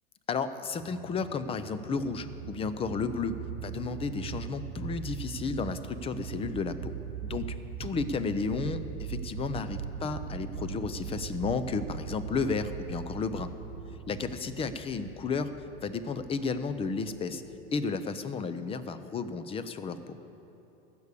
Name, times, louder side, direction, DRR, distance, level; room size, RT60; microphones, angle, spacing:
voice 1, 0.3-6.9 7.2-13.5 14.1-15.5 15.8-17.4 17.7-20.1, left 4 dB, 20° left, 12 dB, 0.5 m, -33 dB
sound 1, 0.7-17.8, right 8 dB, 85° right, 0.7 m, -40 dB
15.5 x 6.9 x 8.3 m, 3.0 s
supercardioid pair, 130°, 31 cm